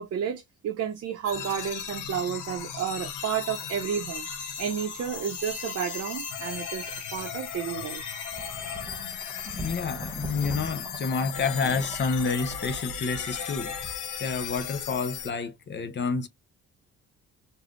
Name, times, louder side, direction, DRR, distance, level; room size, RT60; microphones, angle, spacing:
voice 1, 0.0-8.0, right 8 dB, 55° right, 0.7 m, -31 dB
sound 1, 1.2-15.3, left 7 dB, 85° left, 0.8 m, -36 dB
sound 2, 8.3-12.9, right 4 dB, 15° right, 0.3 m, -42 dB
voice 2, 9.5-16.3, left 5 dB, 35° left, 0.7 m, -29 dB
3.1 x 2.6 x 2.4 m
cardioid pair, 90°, 30 cm